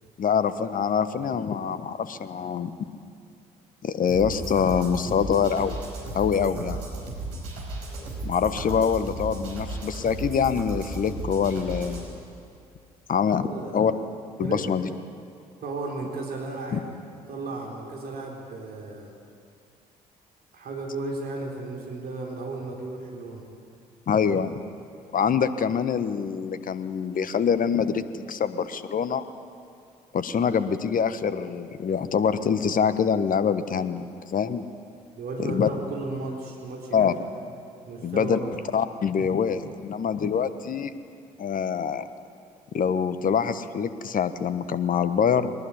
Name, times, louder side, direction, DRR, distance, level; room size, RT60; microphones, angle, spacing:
voice 1, 0.2-2.7 3.8-5.8 6.1-6.8 8.2-12.2 13.1-13.9 14.4-14.9 16.7-16.8 24.1-24.6 25.1-29.2 30.1-34.1 34.3-34.6 35.4-35.7 36.9-37.1 38.0-38.4 38.7-40.9 41.4-42.0 42.7-45.5, left 7 dB, 45° left, 12 dB, 1.4 m, -25 dB
sound 1, 4.1-12.1, right 2 dB, 75° right, 4.8 m, -35 dB
voice 2, 13.4-13.8 14.4-14.7 15.6-16.9 17.3-19.1 20.5-23.4 35.2-37.2 37.9-38.5, right 3 dB, 50° right, 0 dB, 3.8 m, -34 dB
23.0 x 19.5 x 9.8 m, 2.3 s
figure-of-eight pair, 45°, 20 cm